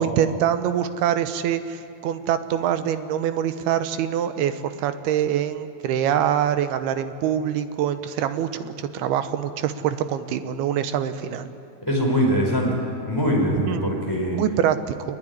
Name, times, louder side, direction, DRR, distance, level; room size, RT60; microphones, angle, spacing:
voice 1, 0.0-11.5 13.7-14.0 14.3-15.2, right 9 dB, 80° right, 10 dB, 2.8 m, -24 dB
voice 2, 11.9-12.8 13.1-14.4, equal, 5° left, -1 dB, 4.8 m, -22 dB
24.0 x 21.0 x 10.0 m, 2.6 s
omnidirectional pair, 4.7 m